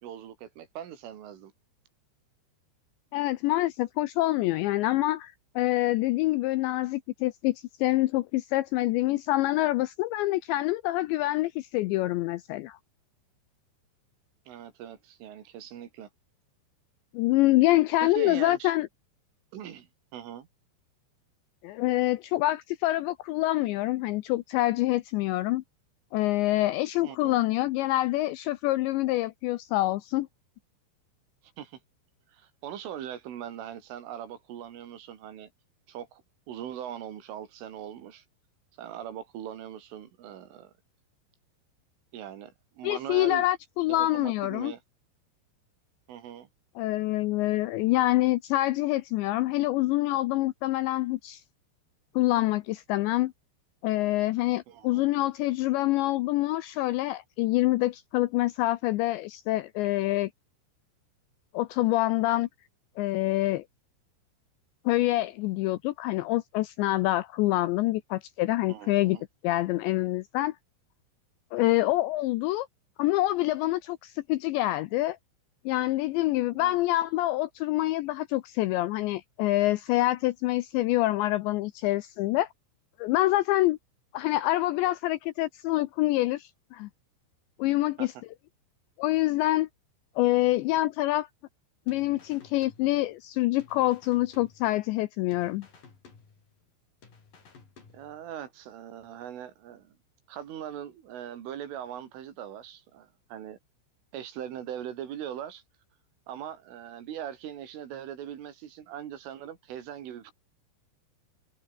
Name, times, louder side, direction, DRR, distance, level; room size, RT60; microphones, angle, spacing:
voice 1, 0.0-1.5 14.5-16.1 18.0-18.7 19.5-20.5 27.0-27.4 31.6-31.8 32.3-35.5 35.9-36.2 36.5-38.3 38.8-40.7 42.1-43.5 43.9-44.8 46.1-46.5 54.7-55.1 68.7-69.2 76.6-76.8 88.0-88.1 97.9-100.0 100.3-103.6 104.1-105.6 106.3-110.3, right 10 dB, 75° right, 5.1 m, -41 dB
voice 2, 3.1-12.8 17.1-18.9 21.6-25.6 26.1-30.3 42.8-44.7 46.8-51.4 52.2-53.3 53.8-60.3 61.5-62.5 63.0-63.6 64.9-69.2 69.4-70.5 71.5-72.7 73.0-75.2 75.7-82.5 83.0-83.8 84.1-86.9 87.6-88.1 89.0-89.7 90.2-91.3 91.9-95.7, left 17 dB, 80° left, 2.6 m, -26 dB
sound 1, 91.9-93.3 93.6-95.0 95.3-96.7 97.0-98.4, left 5 dB, 45° left, 6.5 m, -55 dB
omnidirectional pair, 5.9 m